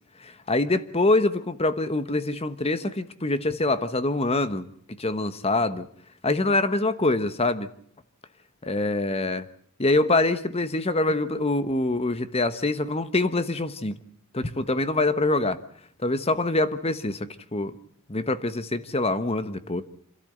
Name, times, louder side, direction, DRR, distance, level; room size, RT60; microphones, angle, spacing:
voice 1, 0.2-4.7 5.0-5.9 6.2-7.7 8.6-9.4 9.8-14.0 14.3-15.6 16.0-17.7 18.1-19.8, left 2 dB, 25° left, 12 dB, 1.2 m, -25 dB
28.0 x 13.0 x 7.9 m, 0.65 s
head